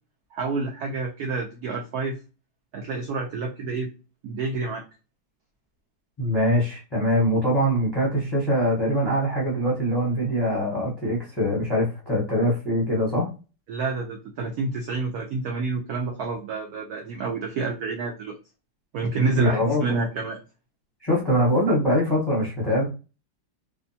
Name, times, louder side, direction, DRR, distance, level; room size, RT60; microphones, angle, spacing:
voice 1, 0.3-2.2 2.7-3.9 4.2-4.8 13.7-18.4 18.9-20.4, right 3 dB, 80° right, 2 dB, 0.8 m, -28 dB
voice 2, 6.2-13.3 19.4-19.8 21.0-22.9, equal, 20° left, -5 dB, 0.6 m, -23 dB
3.4 x 2.1 x 2.6 m, 0.32 s
omnidirectional pair, 2.2 m